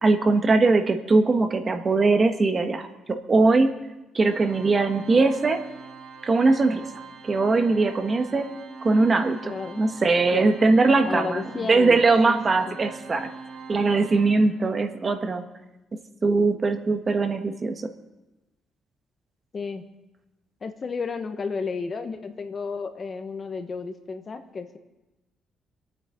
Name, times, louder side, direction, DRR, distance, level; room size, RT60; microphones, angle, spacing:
voice 1, 0.0-3.7 4.1-5.7 6.2-6.9 7.2-8.5 8.8-13.3 13.7-15.4 16.2-17.9, right 3 dB, 35° right, 7 dB, 1.3 m, -21 dB
Organ, 4.2-14.9, right 5 dB, 65° right, 2.7 m, -43 dB
voice 2, 9.4-9.8 10.3-10.5 11.0-12.4 12.7-12.8 19.5-19.8 20.6-24.8, left 4 dB, 40° left, 8 dB, 1.3 m, -32 dB
26.5 x 9.0 x 3.9 m, 1.0 s
cardioid pair, 90°, 0 cm